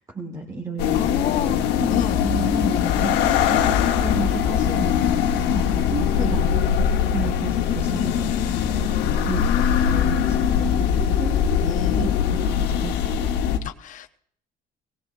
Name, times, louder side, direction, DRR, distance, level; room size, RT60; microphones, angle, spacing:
voice 1, 0.1-3.7 4.0-5.2 5.5-5.6 5.9-6.6 7.1-8.3 8.7-8.9 9.3-11.5 11.8-12.1 12.4-13.2, right 3 dB, 20° right, 0 dB, 1.4 m, -32 dB
sound 1, 0.8-13.6, left 8 dB, 85° left, 1.0 m, -21 dB
voice 2, 0.9-1.6 1.9-2.2 5.6-5.9 6.2-6.5 7.9-8.2 9.0-10.9 11.6-12.1 13.6-14.1, left 10 dB, 50° left, 8 dB, 0.6 m, -29 dB
18.5 x 17.0 x 2.5 m, 0.65 s
cardioid pair, 110°, 17 cm